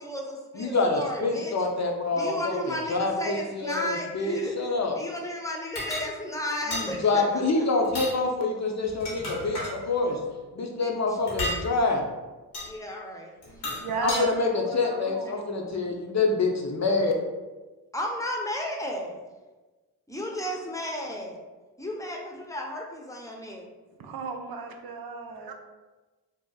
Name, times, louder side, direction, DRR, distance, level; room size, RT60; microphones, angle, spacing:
voice 1, 0.0-1.5 2.1-4.6 5.0-7.4 10.8-10.9 12.7-13.6 15.4-15.5 17.9-19.1 20.1-21.4 21.8-23.6, left 1 dB, 10° left, 0 dB, 0.7 m, -34 dB
voice 2, 0.5-5.0 6.7-10.2 10.5-12.0 14.0-17.1, left 3 dB, 40° left, 1 dB, 0.6 m, -26 dB
sound 1, 5.8-6.1 6.7-6.9 7.8-8.2 8.8-9.7 11.3-11.6 12.5-12.7 13.4-14.2, left 1 dB, 75° left, 1.1 m, -32 dB
voice 3, 13.6-14.3 14.6-15.3 24.0-25.5, right 4 dB, 65° right, 4 dB, 0.5 m, -35 dB
2.6 x 2.0 x 3.9 m, 1.2 s
supercardioid pair, 45°, 40 cm